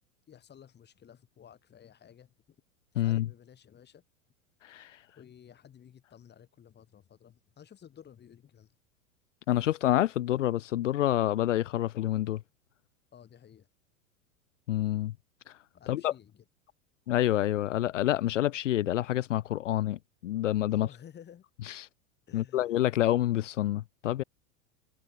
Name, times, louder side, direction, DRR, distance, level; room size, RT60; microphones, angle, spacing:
voice 1, 0.3-2.3 3.0-4.0 5.2-8.8 13.1-13.7 15.7-16.4 20.7-21.4 22.3-22.7, left 9 dB, 25° left, 7.4 m, -53 dB
voice 2, 3.0-3.3 4.6-4.9 9.5-12.4 14.7-15.1 15.9-16.1 17.1-20.9 21.7-21.9 22.3-24.2, left 13 dB, 65° left, 0.7 m, -28 dB
figure-of-eight pair, 90°, 40 cm